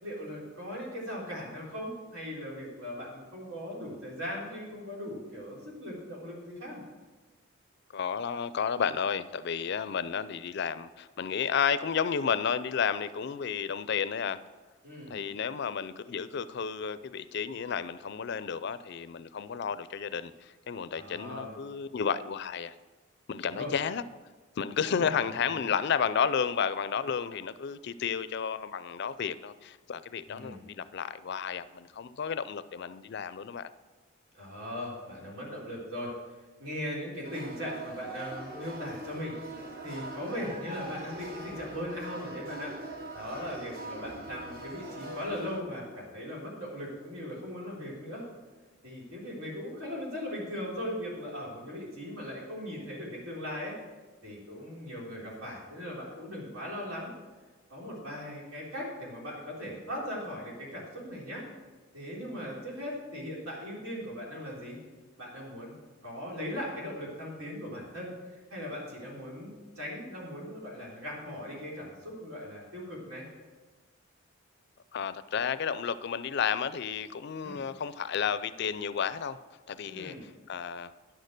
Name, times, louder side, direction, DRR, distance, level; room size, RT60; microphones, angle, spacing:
voice 1, 0.0-6.8 14.8-15.2 21.0-21.6 23.4-23.7 24.8-25.7 30.3-30.6 34.3-36.1 36.6-39.4 39.8-42.7 43.1-48.2 48.8-53.8 54.2-57.1 57.7-61.4 61.9-64.8 65.2-65.7 66.0-73.3 77.4-77.6 79.9-80.2, left 1 dB, 85° right, -4 dB, 3.8 m, -39 dB
voice 2, 7.9-14.4 15.1-22.7 23.3-24.0 24.6-33.7 74.9-79.4 79.7-80.9, left 7 dB, 55° left, 15 dB, 0.4 m, -32 dB
sound 1, 37.2-45.6, right 2 dB, 45° right, 1.2 m, -42 dB
10.0 x 6.6 x 6.5 m, 1.3 s
head